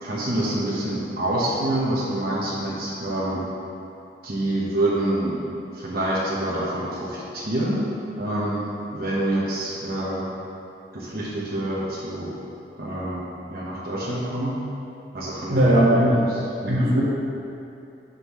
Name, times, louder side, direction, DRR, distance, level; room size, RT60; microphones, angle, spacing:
voice 1, 0.0-3.4 4.2-5.4 5.7-7.9 8.2-10.2 10.9-12.3 12.8-13.2 13.5-14.6 15.1-16.8, right 1 dB, 55° right, -8 dB, 1.2 m, -27 dB
voice 2, 15.5-16.2 16.7-17.0, right 1 dB, 75° right, -5 dB, 1.4 m, -18 dB
10.5 x 5.6 x 3.2 m, 2.7 s
head